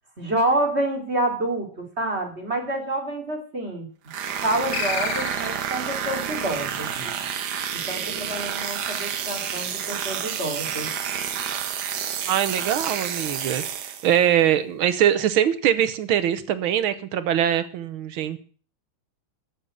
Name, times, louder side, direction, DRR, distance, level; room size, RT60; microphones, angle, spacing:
voice 1, 0.2-3.9 4.4-7.1 7.9-10.9, right 1 dB, 30° right, 1 dB, 2.9 m, -28 dB
sound 1, 4.1-14.3, right 8 dB, 60° right, 1.5 m, -29 dB
sound 2, 4.7-5.9, left 7 dB, 90° left, 2.1 m, -30 dB
voice 2, 12.3-18.4, right 10 dB, 80° right, 12 dB, 1.8 m, -22 dB
13.5 x 6.8 x 7.6 m, 0.43 s
omnidirectional pair, 2.3 m